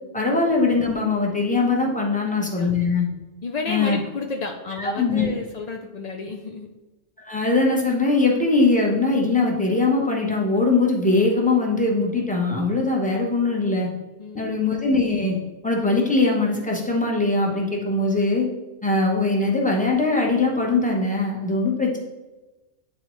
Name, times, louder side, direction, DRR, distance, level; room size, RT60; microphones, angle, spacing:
voice 1, 0.1-3.1 3.7-4.0 4.8-5.3 7.2-13.9 14.3-15.3 15.6-18.5 18.8-22.0, left 3 dB, 5° left, -1 dB, 0.9 m, -21 dB
voice 2, 2.2-2.7 3.4-6.7 14.2-14.5, left 3 dB, 75° left, 3 dB, 0.3 m, -31 dB
8.9 x 3.9 x 3.1 m, 1.1 s
omnidirectional pair, 1.3 m